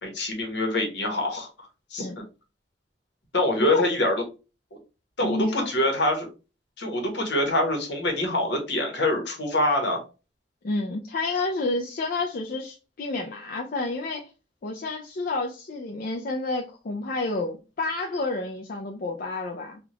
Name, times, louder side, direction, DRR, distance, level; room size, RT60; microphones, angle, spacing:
voice 1, 0.0-1.5 1.9-2.2 3.3-4.1 5.2-6.3 6.8-10.0, left 1 dB, 75° left, 1.2 m, -25 dB
voice 2, 5.2-5.7 10.6-14.3 14.6-19.8, left 2 dB, 50° left, 0.5 m, -29 dB
3.5 x 2.4 x 2.9 m
head